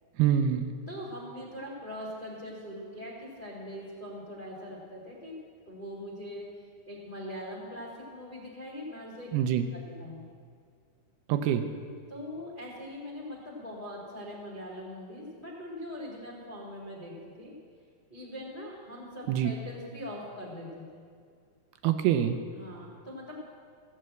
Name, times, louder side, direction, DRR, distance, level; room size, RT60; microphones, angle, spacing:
voice 1, 0.2-0.7 9.3-9.7 11.3-11.6 19.3-19.5 21.8-22.4, right 10 dB, 80° right, 8 dB, 2.6 m, -25 dB
voice 2, 0.9-5.3 5.6-10.3 12.1-17.5 18.1-20.8 22.5-23.3, left 1 dB, 20° left, -4 dB, 1.5 m, -42 dB
15.5 x 8.7 x 7.8 m, 2.1 s
omnidirectional pair, 4.7 m